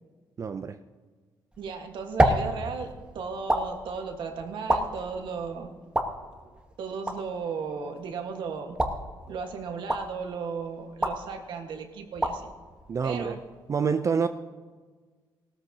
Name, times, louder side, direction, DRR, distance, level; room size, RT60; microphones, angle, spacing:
voice 1, 0.4-0.8 12.9-13.4 13.7-14.3, right 6 dB, 40° right, 9 dB, 0.4 m, -27 dB
sound 1, 1.5-13.7, right 1 dB, 10° right, 1.2 m, -32 dB
voice 2, 1.6-5.7 6.8-8.7 9.3-12.5 13.0-13.4, right 5 dB, 75° right, 4 dB, 1.5 m, -35 dB
17.5 x 13.5 x 2.8 m, 1.4 s
cardioid pair, 100°, 8 cm